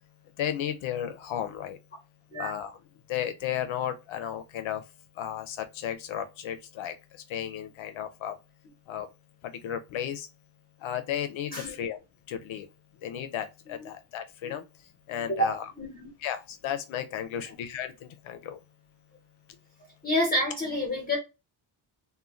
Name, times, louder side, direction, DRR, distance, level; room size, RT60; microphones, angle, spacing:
voice 1, 0.4-1.8 2.4-2.8 3.1-4.8 5.2-6.9 7.3-8.3 8.9-9.1 9.6-10.3 10.8-12.0 12.3-12.7 13.0-14.6 15.1-15.6 16.2-18.6, left 10 dB, 75° left, 0.6 m, -34 dB
voice 2, 15.1-15.5 15.8-16.1 20.0-21.2, equal, 20° left, 1.1 m, -29 dB
2.5 x 2.2 x 3.0 m
wide cardioid pair, 140°, 48 cm